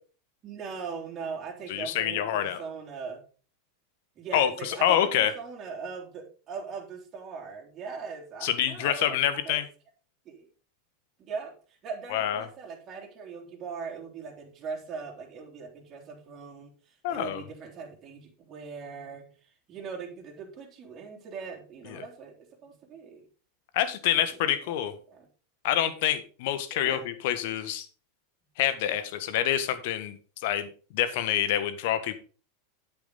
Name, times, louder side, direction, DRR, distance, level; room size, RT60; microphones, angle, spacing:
voice 1, 0.4-3.2 4.1-9.6 10.2-10.5 11.2-23.2 24.1-24.4 25.1-25.3 26.7-27.1, right 5 dB, 35° right, 0 dB, 3.3 m, -40 dB
voice 2, 1.7-2.6 4.3-5.3 8.4-9.6 12.1-12.5 17.0-17.4 21.9-22.0 23.7-24.9 25.6-27.9 28.6-32.2, left 11 dB, 60° left, 11 dB, 1.5 m, -27 dB
8.9 x 8.5 x 4.0 m, 0.37 s
hypercardioid pair, 90°, 0 cm